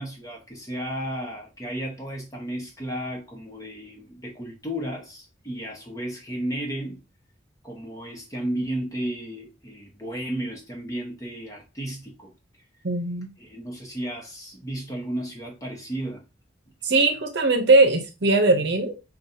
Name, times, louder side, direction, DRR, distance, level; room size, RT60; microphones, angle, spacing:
voice 1, 0.0-7.0 7.6-12.3 13.4-16.2, right 1 dB, 20° left, 1.0 m, -33 dB
voice 2, 12.8-13.3 16.8-19.1, right 3 dB, 65° right, 0.8 m, -20 dB
5.2 x 2.4 x 2.7 m
head